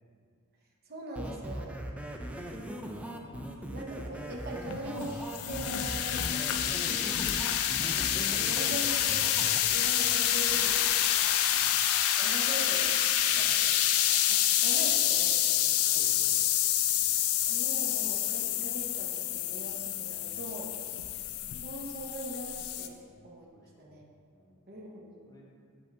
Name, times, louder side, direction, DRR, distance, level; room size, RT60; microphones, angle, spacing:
voice 1, 0.9-1.8 2.6-7.1 7.9-9.3 9.7-11.4 12.2-13.0 13.3-16.0 17.5-20.7 21.6-23.5 23.8-24.1 24.7-25.2, right 1 dB, 45° right, -1 dB, 0.8 m, -42 dB
sound 1, 1.2-9.6, right 1 dB, 5° right, 0.3 m, -40 dB
sound 2, 4.7-22.9, left 11 dB, 65° left, 0.4 m, -28 dB
voice 2, 11.5-11.8 13.3-13.5 15.9-16.5 16.9-17.1 20.2-20.4 20.8-20.9 23.0-23.2 23.5-24.0 24.3-24.6 25.3-25.5, equal, 15° left, -3 dB, 0.8 m, -56 dB
6.5 x 5.3 x 3.4 m, 2.1 s
head